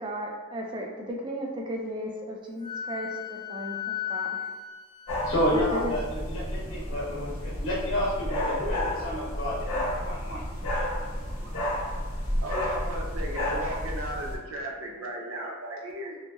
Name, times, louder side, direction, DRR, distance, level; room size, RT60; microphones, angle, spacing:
voice 1, 0.0-4.5 5.5-5.9, equal, 20° right, 0 dB, 0.4 m, -35 dB
Wind instrument woodwind instrument, 2.6-6.1, left 10 dB, 20° left, 0.7 m, -36 dB
sound 1, 5.1-14.3, left 1 dB, 35° left, 1.4 m, -31 dB
voice 2, 5.2-10.4, equal, 65° left, -6 dB, 1.3 m, -30 dB
voice 3, 11.2-11.8 12.4-16.2, right 1 dB, 70° right, -1 dB, 0.6 m, -36 dB
5.8 x 2.1 x 2.3 m, 1.4 s
head